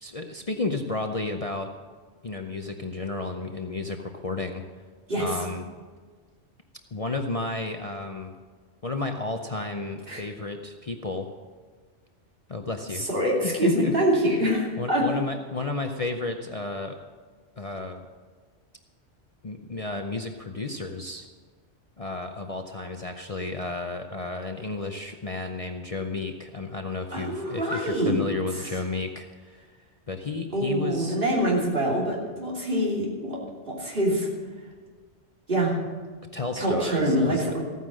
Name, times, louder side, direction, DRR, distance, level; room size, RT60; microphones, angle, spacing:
voice 1, 0.0-1.7 2.2-4.6 5.2-5.6 6.9-8.4 8.8-11.3 12.5-13.1 13.4-13.9 14.8-17.0 17.6-18.1 19.4-21.3 22.0-29.5 30.1-31.2 36.3-37.4, left 3 dB, 35° left, 4 dB, 0.7 m, -32 dB
voice 2, 12.9-15.0 27.1-28.2 28.5-28.7 30.5-33.4 33.7-34.3 35.5-35.8 36.6-37.6, right 1 dB, 50° right, -3 dB, 3.2 m, -25 dB
15.0 x 9.3 x 6.2 m, 1.5 s
omnidirectional pair, 1.2 m